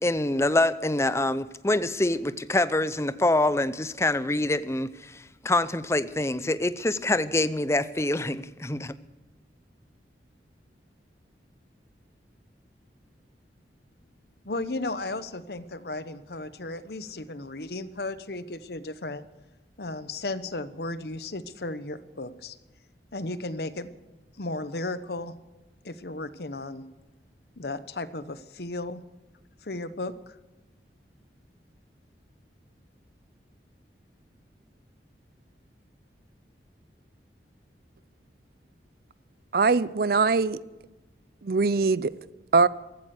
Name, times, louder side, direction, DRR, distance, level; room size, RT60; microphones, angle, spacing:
voice 1, 0.0-8.9, left 2 dB, 15° left, 0.6 m, -25 dB
voice 2, 14.4-19.3 19.8-22.6 23.1-23.9 24.4-25.3 25.8-26.8 27.6-29.0 29.6-30.4, left 2 dB, 60° left, 1.0 m, -35 dB
voice 3, 39.5-40.6 41.4-42.1 42.5-42.7, right 4 dB, 55° right, 0.5 m, -22 dB
15.5 x 14.0 x 6.6 m
head